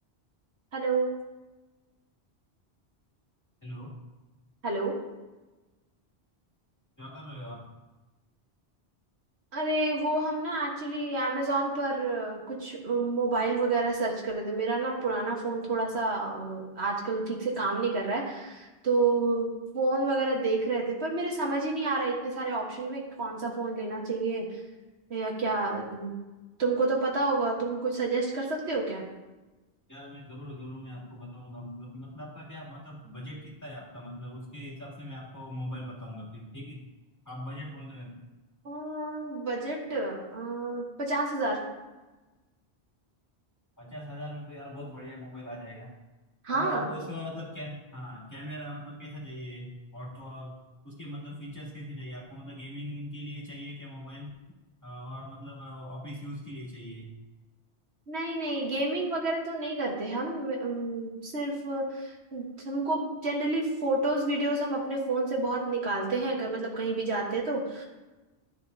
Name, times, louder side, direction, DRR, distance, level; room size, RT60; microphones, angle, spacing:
voice 1, 0.7-1.1 4.6-5.0 9.5-24.4 25.1-26.1 26.6-29.0 38.6-41.6 46.4-46.8 58.1-67.8, right 3 dB, 80° right, -1 dB, 1.7 m, -29 dB
voice 2, 3.6-3.9 7.0-7.6 29.9-36.8 37.2-38.3 43.8-45.9 46.5-50.6 50.8-54.4 54.8-57.1, equal, 15° left, -6 dB, 2.7 m, -41 dB
13.0 x 6.8 x 2.7 m, 1.1 s
omnidirectional pair, 1.1 m